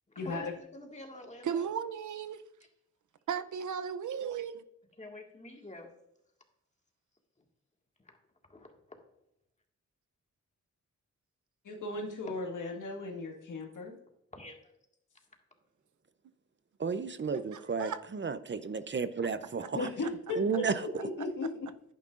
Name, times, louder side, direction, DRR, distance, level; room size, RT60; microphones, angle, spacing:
voice 1, 0.1-1.7 5.0-5.9 8.5-8.7 11.9-12.0 14.3-14.7, left 2 dB, 25° left, 1.8 m, -47 dB
voice 2, 1.4-2.4 3.3-4.6 17.5-18.0 19.6-19.7, right 8 dB, 75° right, 0.6 m, -35 dB
voice 3, 11.6-14.0 19.7-21.5, left 2 dB, 90° left, 1.8 m, -36 dB
voice 4, 16.8-19.9 20.4-20.9, right 5 dB, 40° right, 0.6 m, -33 dB
10.5 x 9.3 x 2.5 m
wide cardioid pair, 80°, 30 cm